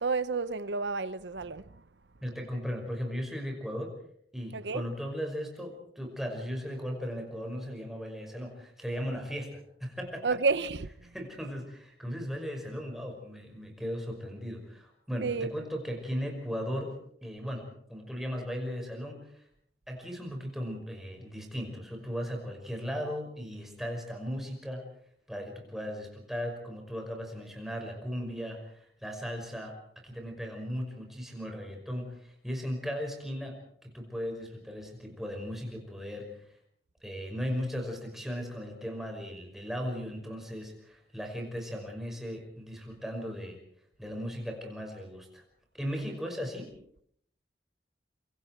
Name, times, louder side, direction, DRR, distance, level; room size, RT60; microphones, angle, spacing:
voice 1, 0.0-1.8 4.5-4.8 10.2-11.1 15.2-15.5, right 4 dB, 85° right, 0.8 m, -30 dB
voice 2, 2.2-3.9 4.3-10.3 11.0-19.5 19.9-24.9 25.3-36.6 37.0-43.6 44.0-45.4 45.7-46.7, equal, ahead, 5.6 m, -37 dB
26.5 x 25.0 x 4.6 m
head